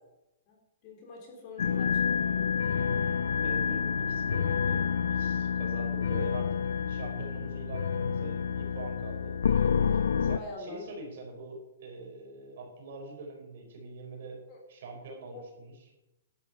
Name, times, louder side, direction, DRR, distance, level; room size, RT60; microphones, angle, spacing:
voice 1, 0.5-2.0 10.3-10.8 14.5-14.6 15.3-15.4, left 2 dB, 25° left, 0 dB, 3.5 m, -45 dB
sound 1, 1.6-10.4, left 6 dB, 90° left, 0.6 m, -28 dB
voice 2, 3.4-4.8 5.1-6.6 6.9-9.3 9.8-14.4 14.7-15.8, right 3 dB, 45° right, 2 dB, 4.6 m, -44 dB
11.5 x 9.4 x 8.2 m, 0.93 s
hypercardioid pair, 175°, 0 cm